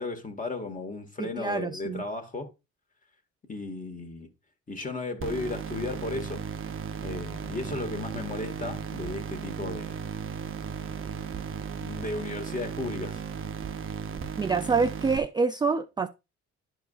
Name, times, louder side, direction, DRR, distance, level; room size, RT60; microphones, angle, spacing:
voice 1, 0.0-2.5 3.5-4.3 4.7-6.4 7.0-10.0 11.8-13.2, left 3 dB, 25° left, 1.6 m, -35 dB
voice 2, 1.2-2.0 14.4-16.1, right 4 dB, 15° right, 0.3 m, -26 dB
sound 1, 5.2-15.2, right 6 dB, 45° right, 0.7 m, -36 dB
11.0 x 4.7 x 2.4 m
cardioid pair, 90°, 30 cm